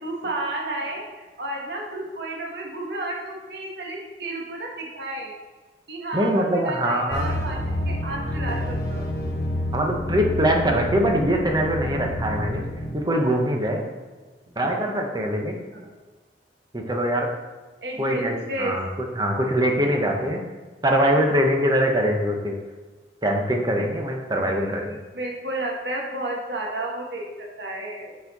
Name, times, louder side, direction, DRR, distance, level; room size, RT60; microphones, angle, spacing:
voice 1, 0.0-5.4 5.9-7.6 7.8-9.1 15.7-15.9 17.8-18.8 19.4-19.9 24.3-28.2, right 2 dB, 65° right, -1 dB, 1.3 m, -32 dB
voice 2, 6.1-7.4 9.7-12.6 12.9-13.8 14.6-15.6 16.7-17.3 18.0-18.9 19.2-20.4 20.8-22.6 23.2-24.9, equal, 25° right, 2 dB, 0.9 m, -23 dB
sound 1, 7.1-12.9, left 1 dB, 65° left, 1.4 m, -28 dB
7.1 x 4.2 x 4.1 m, 1.3 s
head